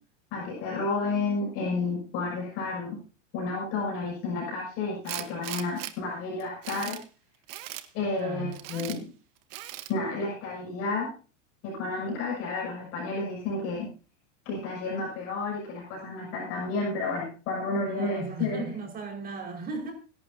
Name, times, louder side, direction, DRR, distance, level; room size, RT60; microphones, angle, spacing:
voice 1, 0.3-3.0 3.3-7.0 7.9-9.1 9.9-11.1 11.6-13.9 14.5-18.6, left 3 dB, 40° left, 7.0 m, -31 dB
Tools, 5.0-5.9 6.4-7.0 7.5-7.9 8.5-9.0 9.5-9.9, right 15 dB, 40° right, 1.3 m, -38 dB
voice 2, 8.2-8.5 17.9-19.9, right 3 dB, 25° right, 5.0 m, -36 dB
25.5 x 11.5 x 2.8 m
supercardioid pair, 150°, 37 cm